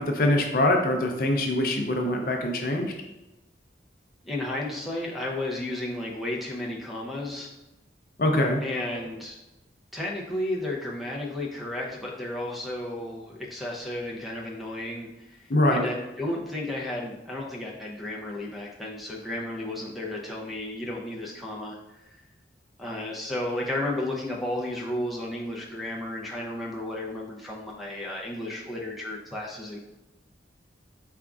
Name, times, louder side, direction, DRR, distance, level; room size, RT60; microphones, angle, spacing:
voice 1, 0.0-2.9 8.2-8.6 15.5-15.9, left 1 dB, 50° left, 3 dB, 0.5 m, -23 dB
voice 2, 4.2-7.5 8.6-9.4 9.9-22.1 22.8-29.8, left 1 dB, ahead, -3 dB, 0.5 m, -33 dB
5.0 x 3.5 x 2.3 m, 0.96 s
head